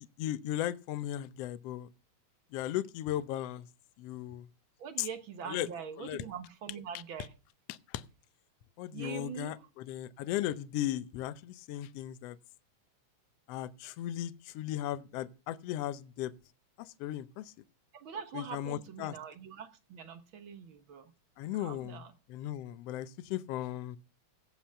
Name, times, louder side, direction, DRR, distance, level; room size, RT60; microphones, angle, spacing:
voice 1, 0.2-1.9 2.5-3.7 4.0-4.5 5.0-5.1 5.4-5.7 6.0-6.2 7.7-8.0 8.8-12.4 13.5-16.3 16.8-17.5 18.3-19.2 21.4-22.0 22.3-24.0, left 13 dB, 70° left, 1.6 m, -36 dB
voice 2, 4.8-7.3 8.9-9.7 17.9-21.1 21.5-22.1, right 7 dB, 55° right, 1.6 m, -43 dB
16.0 x 6.1 x 5.7 m
omnidirectional pair, 3.4 m